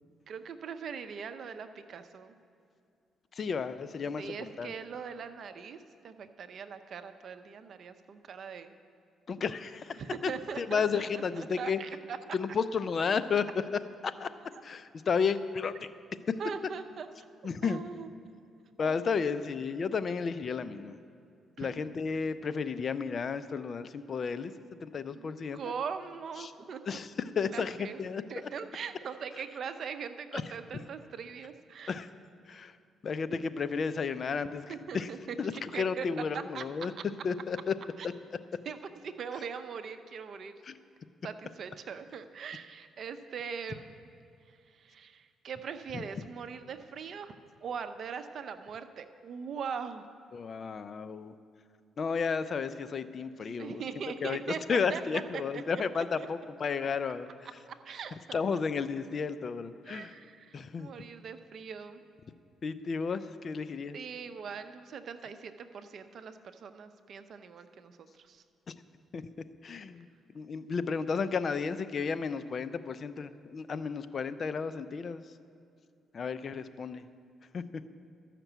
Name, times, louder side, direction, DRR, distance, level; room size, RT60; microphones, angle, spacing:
voice 1, 0.3-2.3 4.2-8.7 10.0-12.2 14.5-14.6 16.4-17.1 17.6-18.1 18.8-19.3 21.6-21.9 25.1-27.0 27.5-31.9 34.7-37.0 38.0-38.1 38.6-40.5 41.2-44.1 44.5-47.3 47.6-50.0 53.6-56.3 57.7-58.4 59.9-62.0 63.9-68.4, right 6 dB, 60° right, 9 dB, 0.7 m, -41 dB
voice 2, 3.4-4.2 4.6-4.7 9.3-10.0 10.6-11.8 12.3-13.5 14.0-14.3 14.6-15.7 17.4-17.8 18.8-20.9 21.6-24.5 24.8-25.6 26.9-27.1 27.4-28.2 30.3-30.4 31.9-32.1 32.5-32.7 33.0-34.7 34.9-35.1 35.4-36.9 37.2-37.7 40.7-40.8 50.3-51.3 52.0-53.8 54.2-54.4 54.7-57.3 58.3-60.1 60.5-60.9 62.6-63.9 69.1-69.2 69.6-70.1 70.3-75.2 76.1-77.0 77.5-77.6, left 5 dB, 45° left, 13 dB, 0.5 m, -32 dB
13.0 x 5.9 x 8.0 m, 2.5 s
cardioid pair, 90°, 0 cm